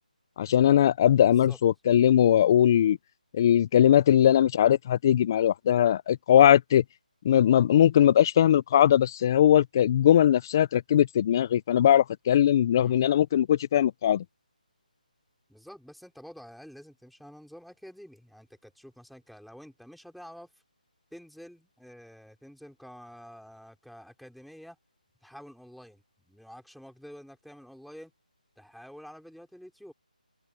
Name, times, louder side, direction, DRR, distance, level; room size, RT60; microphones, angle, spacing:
voice 1, 0.4-3.0 3.3-6.8 7.2-14.2, left 10 dB, 25° left, 0.4 m, -20 dB
voice 2, 1.2-1.6 12.7-13.0 15.5-20.5 21.1-24.8 25.2-28.1 28.6-29.9, equal, ahead, 4.3 m, -48 dB
figure-of-eight pair, 165°, 5 cm